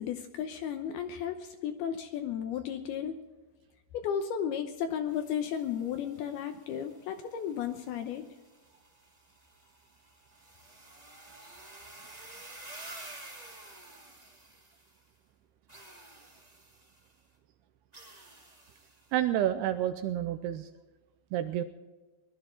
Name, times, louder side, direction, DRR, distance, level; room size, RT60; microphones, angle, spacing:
voice 1, 0.0-3.2 3.9-8.3, left 8 dB, 75° left, 7 dB, 2.5 m, -34 dB
sound 1, 5.0-15.1 15.7-17.1 17.9-19.1, right 2 dB, 30° right, 0.7 m, -51 dB
voice 2, 19.1-20.7 21.3-21.6, right 11 dB, 80° right, 9 dB, 2.4 m, -29 dB
20.5 x 12.0 x 4.4 m, 1.2 s
omnidirectional pair, 5.1 m